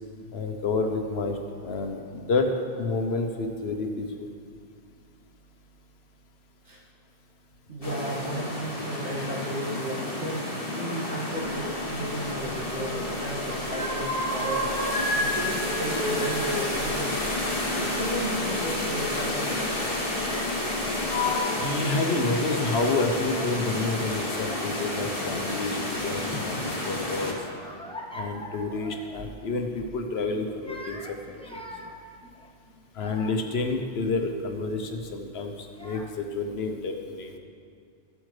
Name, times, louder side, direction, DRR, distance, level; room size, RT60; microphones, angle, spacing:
voice 1, 0.3-2.5 2.8-4.1 21.6-27.4 28.1-31.0 31.3-31.6 33.0-37.3, left 3 dB, 65° left, 4 dB, 1.0 m, -29 dB
voice 2, 7.7-10.4 10.7-17.2 17.7-19.8, right 1 dB, 75° right, -5 dB, 2.2 m, -34 dB
sound 1, 7.8-27.3, left 1 dB, 30° left, 1.2 m, -30 dB
sound 2, 12.2-13.1 13.4-15.2 15.5-18.0 19.1-19.2 20.1-20.7 21.0-21.4, left 1 dB, 25° right, 2.9 m, -31 dB
Child speech kid speaking / Crying sobbing, 23.1-23.6 24.3-24.9 25.3-26.1 26.5-29.4 29.7-30.0 30.5-33.6 34.2-34.6 35.4-35.5 35.7-36.4, equal, 5° left, 0.5 m, -43 dB
14.0 x 8.0 x 3.2 m, 2.3 s
omnidirectional pair, 1.2 m